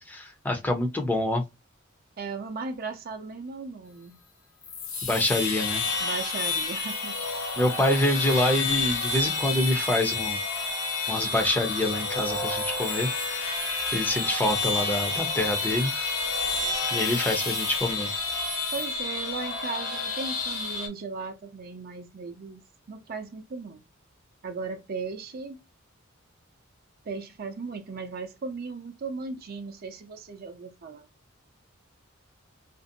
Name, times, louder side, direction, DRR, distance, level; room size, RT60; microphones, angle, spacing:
voice 1, 0.1-1.4 5.1-5.8 7.6-10.4 11.1-13.6 13.9-15.9 16.9-18.1, left 1 dB, 10° left, 0.5 m, -26 dB
voice 2, 2.2-4.1 6.0-7.2 18.7-22.6 22.9-23.8 24.4-25.6 27.1-31.1, right 4 dB, 45° right, 0.5 m, -37 dB
sound 1, 4.6-20.9, left 3 dB, 80° left, 1.1 m, -29 dB
2.5 x 2.0 x 2.5 m
head